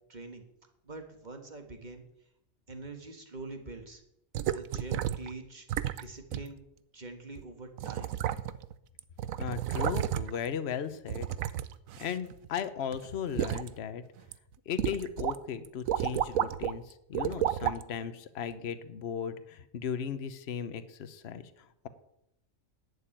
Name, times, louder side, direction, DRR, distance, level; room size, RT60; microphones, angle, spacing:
voice 1, 0.1-0.4 0.8-2.0 2.7-4.0 4.4-6.6 6.9-8.1, right 3 dB, 35° right, 5 dB, 1.6 m, -44 dB
sound 1, 4.3-5.3 5.7-6.0 6.3-6.5 7.4-7.5 7.8-8.7 9.0-10.5 11.1-12.6 12.9-13.7 14.2-14.3 14.8-15.4 15.6-16.7 17.1-17.8 18.5-18.6, right 11 dB, 85° right, 1.0 m, -32 dB
voice 2, 9.4-11.3 12.0-14.0 14.7-21.5, left 7 dB, 55° left, 12 dB, 1.1 m, -36 dB
11.5 x 6.9 x 9.0 m, 0.81 s
omnidirectional pair, 1.4 m